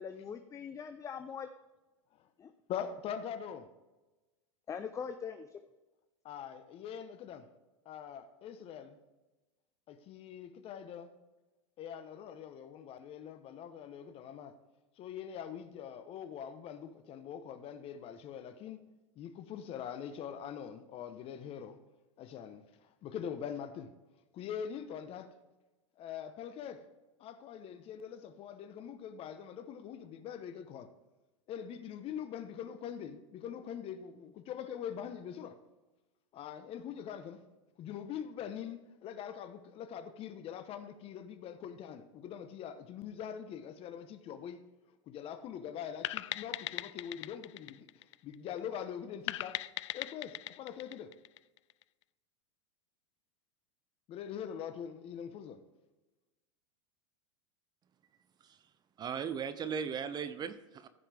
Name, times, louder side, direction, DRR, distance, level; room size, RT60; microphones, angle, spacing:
voice 1, 0.0-1.5 2.4-2.5 4.7-5.6, left 6 dB, 20° left, 0.6 m, -42 dB
voice 2, 2.7-3.7 6.2-7.5 7.8-9.0 9.9-11.1 11.8-14.5 15.0-18.8 19.2-21.8 22.2-23.9 24.3-25.3 26.0-26.8 27.2-30.9 31.5-35.6 36.3-37.4 37.8-44.6 45.1-47.9 48.2-49.6 49.9-51.1 54.1-55.6, left 8 dB, 40° left, 1.0 m, -43 dB
sound 1, 46.0-48.6 49.3-51.8, left 16 dB, 70° left, 0.4 m, -39 dB
voice 3, 59.0-60.9, right 7 dB, 25° right, 0.6 m, -37 dB
15.0 x 5.8 x 3.4 m
hypercardioid pair, 115°, 16 cm